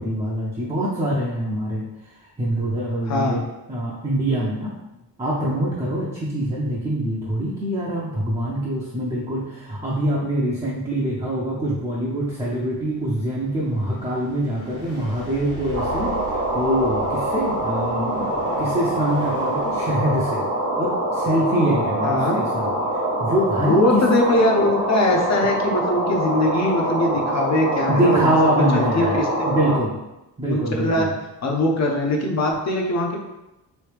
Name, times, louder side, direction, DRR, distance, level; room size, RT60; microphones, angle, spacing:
voice 1, 0.0-3.4 3.7-4.7 5.2-20.4 20.8-24.0 27.9-29.2 29.5-29.9 30.4-31.1, right 1 dB, 15° right, -6 dB, 0.5 m, -24 dB
voice 2, 3.1-3.4 22.0-22.4 23.6-28.3 28.7-29.5 30.5-31.1 31.4-33.2, left 1 dB, 40° left, 1 dB, 0.6 m, -21 dB
sound 1, 12.6-19.9, right 1 dB, 75° left, 1.4 m, -40 dB
sound 2, 15.7-29.8, right 1 dB, 45° right, 0.9 m, -24 dB
3.1 x 2.7 x 3.3 m, 0.95 s
cardioid pair, 120°, 41 cm